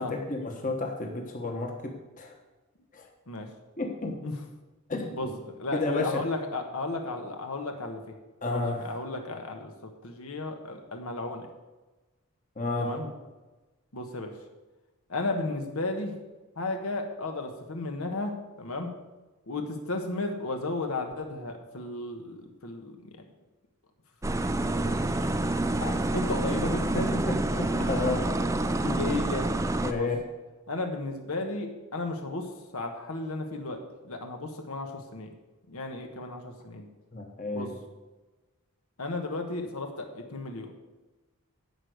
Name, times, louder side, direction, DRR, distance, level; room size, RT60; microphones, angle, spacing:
voice 1, 0.0-2.4 2.9-3.1 3.8-4.2 4.9-5.3 5.7-6.2 8.4-9.0 12.6-12.9 27.7-28.3 28.9-29.0 29.8-30.2 37.1-37.7, left 3 dB, 35° left, 2 dB, 1.3 m, -31 dB
voice 2, 5.1-8.2 8.5-11.5 12.8-13.1 13.9-14.3 15.1-16.1 16.6-18.9 19.5-23.2 24.8-25.3 25.8-27.2 27.5-27.7 28.6-29.5 29.9-30.1 30.7-35.3 35.7-36.9 37.5-37.7 39.0-40.7, left 2 dB, 75° left, 4 dB, 1.2 m, -34 dB
sound 1, 24.2-29.9, right 2 dB, 15° right, 0.3 m, -28 dB
11.0 x 5.0 x 8.0 m, 1.2 s
head